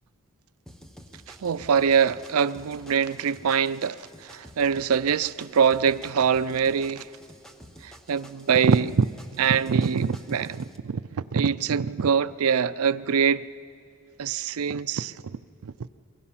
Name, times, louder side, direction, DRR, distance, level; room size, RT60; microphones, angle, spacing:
sound 1, 0.7-10.8, equal, ahead, 0.8 m, -49 dB
voice 1, 1.3-7.1 7.8-13.4 14.2-15.7, right 6 dB, 85° right, 0.5 m, -24 dB
23.5 x 20.5 x 5.7 m
head